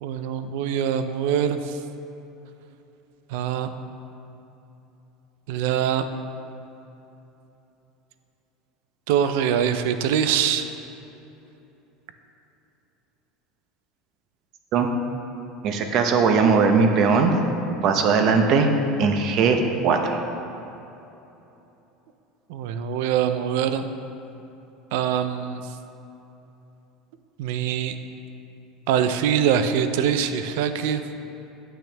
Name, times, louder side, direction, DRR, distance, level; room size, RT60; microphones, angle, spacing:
voice 1, 0.0-1.8 3.3-3.7 5.5-6.0 9.1-10.7 22.5-23.9 24.9-25.6 27.4-27.9 28.9-31.0, right 8 dB, 70° right, 9 dB, 0.5 m, -23 dB
voice 2, 15.6-17.3 17.7-18.7 19.0-20.2, right 5 dB, 45° right, 5 dB, 0.8 m, -19 dB
9.0 x 8.5 x 3.4 m, 3.0 s
cardioid pair, 165°, 0 cm